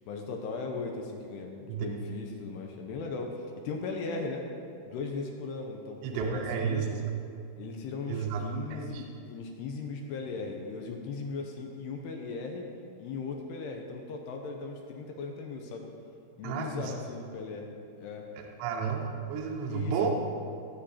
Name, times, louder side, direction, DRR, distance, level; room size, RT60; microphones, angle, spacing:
voice 1, 0.1-4.5 4.8-6.9 7.6-12.7 13.0-15.9 16.4-18.3 19.7-20.1, left 4 dB, 75° left, 2 dB, 2.7 m, -38 dB
voice 2, 6.0-6.9 8.1-9.0 16.4-16.9 18.4-20.1, right 6 dB, 75° right, 1 dB, 2.9 m, -32 dB
17.5 x 7.6 x 4.3 m, 2.5 s
omnidirectional pair, 5.3 m